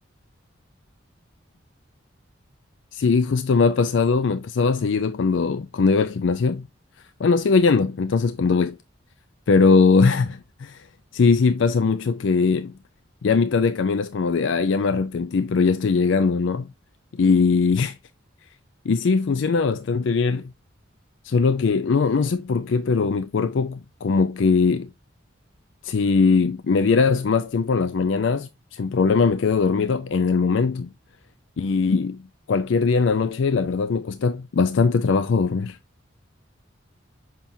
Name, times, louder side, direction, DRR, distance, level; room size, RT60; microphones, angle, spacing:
voice 1, 2.9-6.7 7.2-8.8 9.5-10.8 11.1-12.7 13.2-16.7 17.1-18.0 18.9-20.4 21.2-24.9 25.8-30.9 31.6-32.2 32.5-35.8, left 4 dB, 70° left, 0.4 m, -20 dB
7.2 x 5.8 x 2.6 m
head